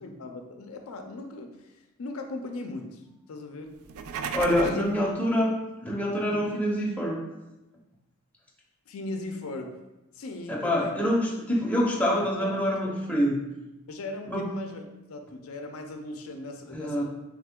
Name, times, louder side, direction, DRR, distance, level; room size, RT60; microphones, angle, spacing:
voice 1, 0.0-3.0 3.3-3.7 4.6-4.9 6.3-6.8 8.9-9.7 10.1-11.0 12.2-13.0 13.9-17.0, left 2 dB, 70° left, 4 dB, 0.5 m, -38 dB
sound 1, 3.8-4.9, right 6 dB, 75° right, 0.3 m, -34 dB
voice 2, 4.3-7.2 10.5-13.4 14.3-14.5 16.7-17.0, equal, 5° left, -3 dB, 0.6 m, -26 dB
3.6 x 3.3 x 3.6 m, 0.97 s
head